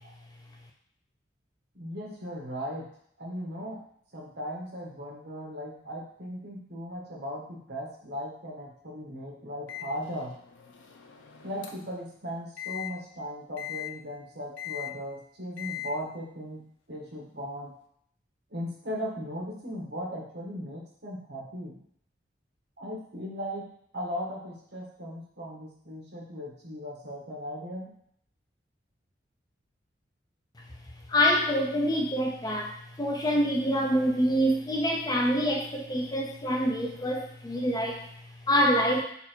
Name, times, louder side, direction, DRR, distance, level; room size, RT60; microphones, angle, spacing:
voice 1, 1.7-2.9 3.2-3.8 4.1-10.3 11.4-17.7 18.5-21.8 22.8-23.7 23.9-27.9, equal, 65° right, -3 dB, 1.3 m, -37 dB
Microwave oven, 9.7-12.0 12.6-12.9 13.6-13.9 14.6-14.9 15.6-15.9, left 14 dB, 85° left, 0.6 m, -40 dB
voice 2, 31.1-39.0, equal, 20° left, 1 dB, 0.5 m, -26 dB
4.3 x 2.6 x 4.4 m, 0.67 s
head